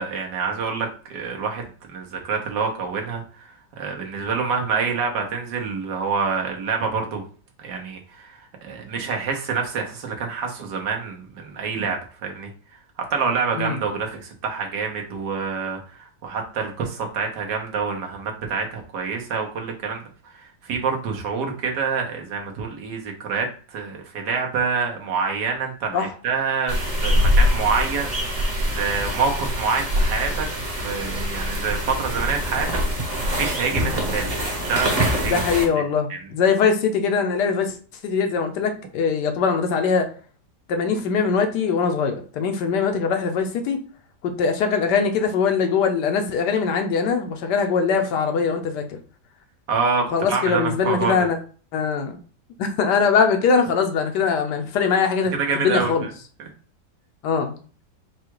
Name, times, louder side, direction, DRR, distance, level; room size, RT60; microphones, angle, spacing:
voice 1, 0.0-7.2 7.6-12.5 13.1-20.0 20.3-32.7 33.1-34.3 34.6-35.5 36.1-36.2 49.7-51.3 55.3-56.1 56.4-56.5, right 5 dB, 75° right, 2 dB, 1.6 m, -27 dB
sound 1, 26.7-35.7, equal, 25° right, 1.0 m, -24 dB
voice 2, 35.2-37.8 38.0-40.1 40.7-43.8 44.2-49.0 50.1-51.4 51.7-52.2 52.6-56.0 57.2-57.5, left 5 dB, 75° left, 5 dB, 1.3 m, -22 dB
4.8 x 2.3 x 4.6 m, 0.41 s
omnidirectional pair, 1.8 m